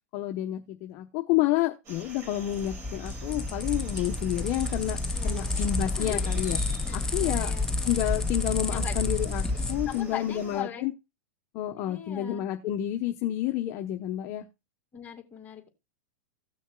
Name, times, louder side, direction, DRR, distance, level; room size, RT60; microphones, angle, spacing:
voice 1, 0.1-5.0 5.2-6.6 6.9-7.5 7.8-10.9 11.5-14.4, left 13 dB, 45° left, 5 dB, 0.9 m, -29 dB
sound 1, 1.8-10.6, right 2 dB, 40° right, 5.4 m, -46 dB
sound 2, 2.4-10.0, left 2 dB, 10° left, 0.5 m, -30 dB
voice 2, 5.1-5.6 6.0-6.3 6.9-7.7 8.7-9.0 9.5-10.9 11.8-12.4 14.9-15.7, left 8 dB, 25° left, 3 dB, 2.4 m, -40 dB
17.0 x 6.3 x 2.3 m, 0.26 s
hypercardioid pair, 120°, 7 cm